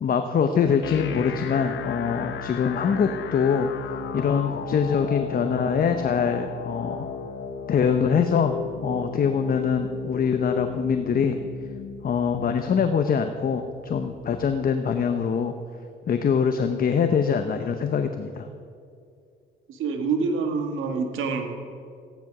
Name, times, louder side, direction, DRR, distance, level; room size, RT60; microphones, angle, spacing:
voice 1, 0.0-3.7 4.1-7.0 7.7-8.6 8.8-11.4 12.0-15.5 16.1-18.5, left 6 dB, 45° left, 7 dB, 0.8 m, -23 dB
sound 1, 0.8-14.8, left 6 dB, 75° left, 1.0 m, -35 dB
voice 2, 19.7-21.4, right 4 dB, 85° right, 5 dB, 1.7 m, -26 dB
14.5 x 10.5 x 6.0 m, 2.4 s
cardioid pair, 90°, 20 cm